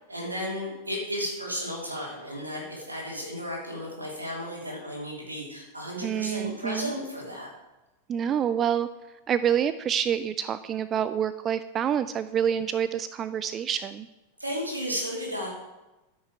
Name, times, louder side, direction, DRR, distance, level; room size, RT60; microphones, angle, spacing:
voice 1, 0.1-7.5 14.4-15.5, equal, 85° right, -2 dB, 3.0 m, -34 dB
voice 2, 6.0-6.9 8.1-8.9 9.3-14.1, right 9 dB, 25° right, 13 dB, 0.3 m, -27 dB
13.5 x 6.4 x 4.5 m, 1.0 s
figure-of-eight pair, 90°, 0 cm